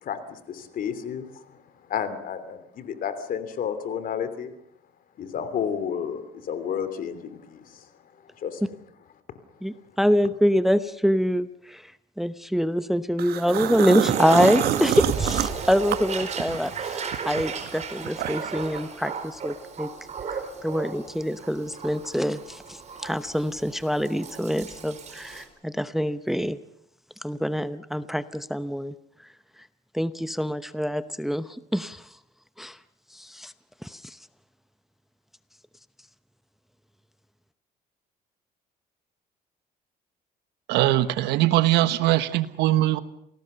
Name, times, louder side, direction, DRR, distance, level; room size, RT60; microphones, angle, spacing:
voice 1, 0.0-1.6 1.9-4.5 5.2-7.9 8.4-8.6, left 8 dB, 55° left, 11 dB, 3.0 m, -31 dB
voice 2, 9.6-11.8 12.2-19.9 20.3-26.6 27.2-28.9 29.9-32.0 32.6-32.8 33.1-33.5 33.8-34.2, equal, ahead, 13 dB, 0.9 m, -25 dB
sound 1, 13.2-16.7 17.1-18.6, right 12 dB, 70° right, 1.1 m, -27 dB
Toilet flush, 13.5-25.4, right 5 dB, 40° right, 4.3 m, -34 dB
voice 3, 40.7-43.0, right 15 dB, 90° right, 13 dB, 1.3 m, -21 dB
28.0 x 18.5 x 6.9 m, 0.74 s
cardioid pair, 110°, 17 cm